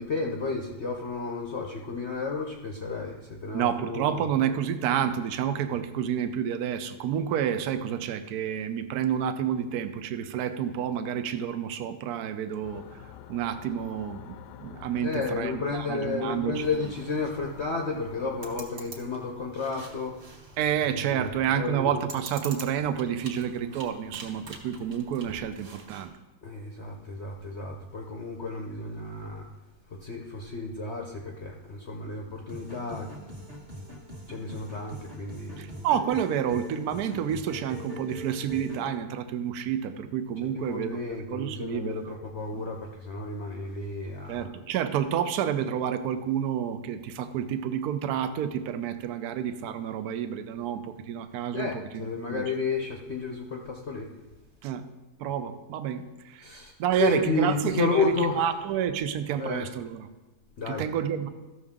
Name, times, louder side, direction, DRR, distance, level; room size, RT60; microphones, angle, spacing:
voice 1, 0.0-4.2 15.0-20.4 20.9-21.3 21.6-21.9 26.4-29.5 30.0-33.1 34.3-35.7 40.5-44.5 51.5-54.1 56.4-56.7 57.0-58.5 59.4-59.7 60.6-60.8, left 3 dB, 55° left, 1 dB, 0.8 m, -32 dB
voice 2, 3.5-12.8 13.3-16.9 20.6-26.1 35.6-41.0 41.3-42.2 42.5-42.7 44.3-52.1 52.3-52.4 54.6-54.8 55.2-56.5 56.8-60.1 60.7-61.3, right 9 dB, 70° right, 10 dB, 1.1 m, -29 dB
sound 1, 12.6-18.6, left 10 dB, 80° left, 1.2 m, -47 dB
sound 2, 16.5-26.1, right 3 dB, 50° right, 1.4 m, -47 dB
sound 3, 32.5-38.9, equal, 30° right, 1.4 m, -42 dB
14.0 x 6.3 x 3.6 m, 1.1 s
omnidirectional pair, 1.8 m